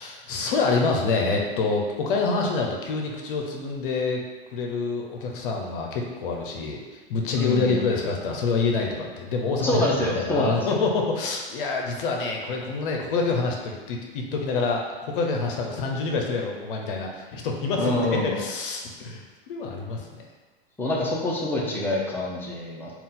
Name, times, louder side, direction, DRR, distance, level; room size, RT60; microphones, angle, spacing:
voice 1, 0.0-4.2 4.5-6.8 7.1-9.8 10.2-20.2, left 4 dB, 60° left, 1 dB, 0.7 m, -27 dB
voice 2, 7.3-7.8 9.6-10.8 17.8-18.3 20.8-22.9, left 2 dB, 5° left, -4 dB, 0.7 m, -26 dB
4.0 x 2.4 x 3.7 m, 1.3 s
hypercardioid pair, 120°, 29 cm